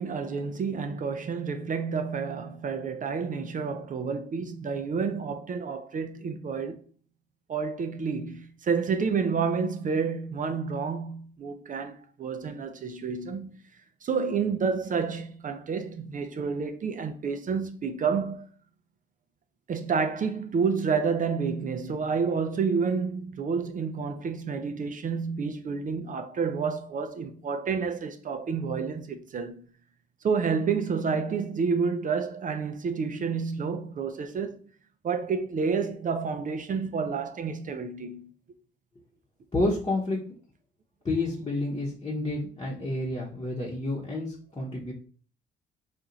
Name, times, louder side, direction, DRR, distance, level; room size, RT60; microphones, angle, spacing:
voice 1, 0.0-6.8 7.5-13.5 14.0-18.5 19.7-29.6 30.2-34.6 35.0-38.3, right 5 dB, 40° right, 0.5 m, -29 dB
voice 2, 39.5-40.2 41.0-44.9, left 2 dB, 20° left, 1.0 m, -29 dB
4.4 x 2.4 x 3.9 m
cardioid pair, 90°, 20 cm